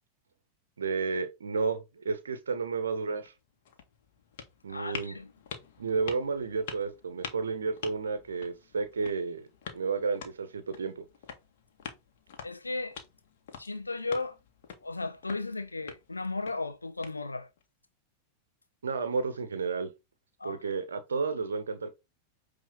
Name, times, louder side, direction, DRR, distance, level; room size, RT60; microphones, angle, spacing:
voice 1, 0.8-3.3 4.6-5.1 5.8-9.5 9.7-11.0 18.8-19.9 20.4-21.9, right 4 dB, 70° right, 1.2 m, -32 dB
sound 1, 3.2-17.6, left 7 dB, 55° left, 1.8 m, -47 dB
voice 2, 4.7-5.3 12.4-13.0 13.6-14.4 14.8-17.5 20.4-20.7, left 3 dB, 80° left, 1.2 m, -35 dB
9.2 x 3.7 x 4.0 m
figure-of-eight pair, 90°, 0 cm